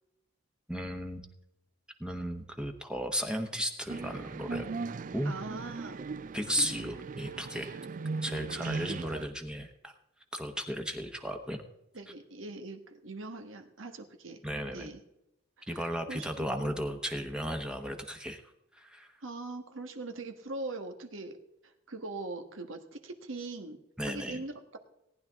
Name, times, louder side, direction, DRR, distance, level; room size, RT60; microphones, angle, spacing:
voice 1, 0.7-1.3 2.0-4.7 5.1-5.3 6.3-7.8 8.2-9.9 10.3-11.6 14.4-14.9 15.7-18.4 18.7-19.2 24.0-24.4, equal, 5° right, 4 dB, 0.9 m, -35 dB
sound 1, 3.9-9.2, right 4 dB, 40° right, 0.3 m, -38 dB
voice 2, 5.2-6.0 7.8-8.1 11.9-14.4 14.7-15.0 15.7-16.7 19.2-21.4 21.6-23.8 24.1-24.8, right 2 dB, 85° right, 6 dB, 1.4 m, -41 dB
18.0 x 10.5 x 3.6 m, 0.88 s
head